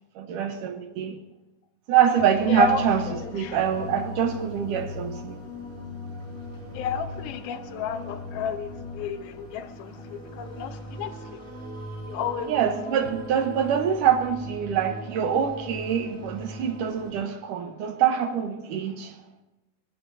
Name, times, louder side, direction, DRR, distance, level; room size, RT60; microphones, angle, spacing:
voice 1, 0.2-1.2 1.9-5.4 12.5-19.2, right 8 dB, 70° right, 2.3 m, -25 dB
sound 1, 2.2-17.1, left 1 dB, 45° right, 5.2 m, -39 dB
voice 2, 2.5-2.8 3.1-3.6 6.7-11.4 12.1-12.5, left 7 dB, 80° left, 2.8 m, -32 dB
21.0 x 20.5 x 2.7 m
omnidirectional pair, 4.3 m